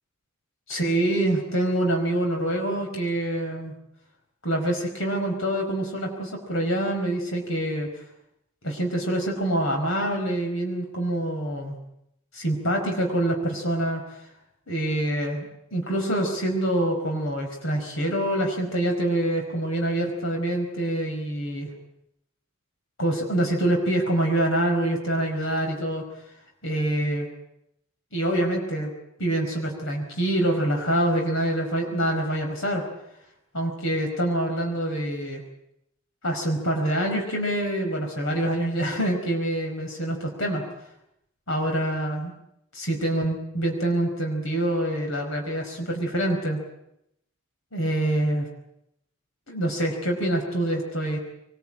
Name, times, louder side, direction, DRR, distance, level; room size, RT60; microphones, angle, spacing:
voice 1, 0.7-3.7 4.4-7.9 8.6-11.8 12.3-14.0 14.7-21.7 23.0-26.0 26.6-27.3 28.1-28.9 29.2-32.8 33.5-35.4 36.2-40.6 41.5-42.3 42.7-46.6 47.7-48.5 49.5-51.2, right 1 dB, 65° left, 2 dB, 5.0 m, -25 dB
24.0 x 21.5 x 8.9 m, 0.79 s
head